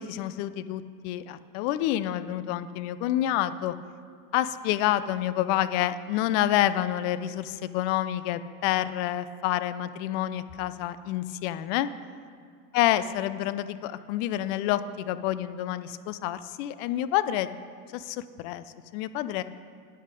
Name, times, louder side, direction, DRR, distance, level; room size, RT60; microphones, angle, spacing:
voice 1, 0.0-3.7 4.3-11.9 12.7-17.5 17.9-18.6 18.9-19.4, left 13 dB, 45° left, 14 dB, 0.5 m, -28 dB
9.9 x 7.6 x 5.1 m, 2.1 s
supercardioid pair, 125°, 46 cm